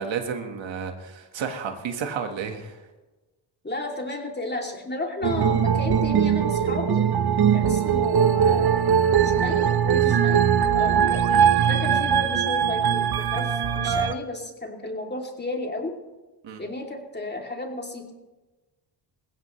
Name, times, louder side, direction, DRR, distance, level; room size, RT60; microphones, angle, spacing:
voice 1, 0.0-2.8 5.2-5.3 11.3-11.5 16.4-16.6, right 6 dB, 80° right, 5 dB, 1.7 m, -32 dB
voice 2, 3.6-7.1 7.5-10.4 10.7-11.1 11.6-16.0 16.6-18.1, left 2 dB, 20° left, 1 dB, 2.9 m, -33 dB
sound 1, 5.2-14.1, right 8 dB, 55° right, 0.9 m, -21 dB
20.5 x 16.0 x 3.2 m, 1.2 s
cardioid pair, 75°, 45 cm